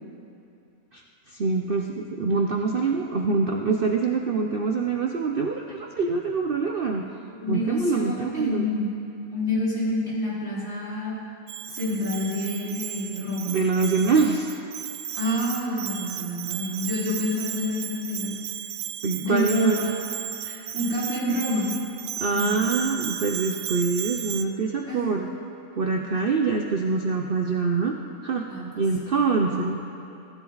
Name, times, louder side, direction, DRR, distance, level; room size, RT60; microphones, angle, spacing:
voice 1, 1.3-7.0 7.5-8.7 13.5-14.5 19.0-19.8 22.2-25.3 25.8-28.0 28.2-28.5 28.8-29.8, right 4 dB, 45° right, 2 dB, 0.8 m, -25 dB
voice 2, 7.4-8.9 9.3-11.2 11.7-13.6 15.2-18.3 19.2-19.9 20.4-21.7 22.3-22.6 24.9-25.1 28.5-28.8 29.5-29.8, left 1 dB, 40° left, -8 dB, 4.7 m, -28 dB
Bell, 11.5-24.4, right 10 dB, 85° right, 1.1 m, -35 dB
23.0 x 14.0 x 4.0 m, 2.8 s
omnidirectional pair, 1.6 m